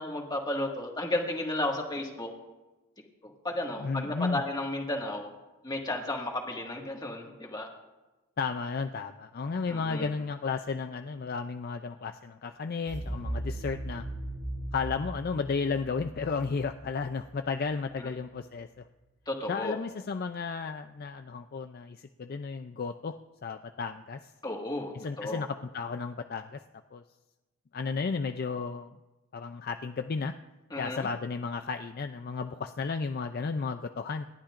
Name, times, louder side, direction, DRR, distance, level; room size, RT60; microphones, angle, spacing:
voice 1, 0.0-2.3 3.2-5.3 5.6-7.7 9.7-10.1 18.0-18.1 19.3-19.8 24.4-25.4 30.7-31.1, left 1 dB, 20° left, 1 dB, 1.8 m, -33 dB
voice 2, 3.8-4.4 8.4-14.0 14.7-18.9 19.5-24.3 24.9-26.6 26.9-27.0 27.7-28.9 29.3-30.3 30.8-34.2, left 4 dB, 45° left, 7 dB, 0.4 m, -33 dB
sound 1, 12.9-17.7, right 1 dB, 55° right, 1.9 m, -38 dB
28.5 x 11.5 x 2.5 m, 1.1 s
head